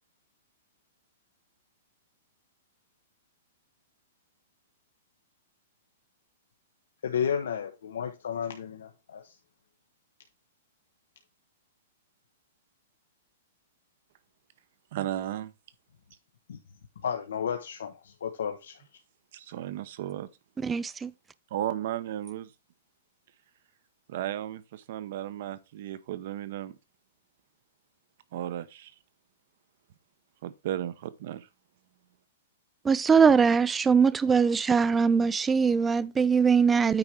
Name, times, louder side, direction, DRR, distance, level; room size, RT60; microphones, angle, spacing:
voice 1, 7.0-9.4 16.5-16.6 17.0-18.8, left 7 dB, 80° left, 1.1 m, -32 dB
voice 2, 14.9-15.5 19.3-20.3 21.5-22.5 24.1-26.8 28.3-28.9 30.4-31.5, right 12 dB, 55° right, 0.9 m, -34 dB
voice 3, 20.6-21.1 32.9-37.0, right 6 dB, 10° right, 0.3 m, -22 dB
9.1 x 4.4 x 4.9 m
hypercardioid pair, 150°, 0 cm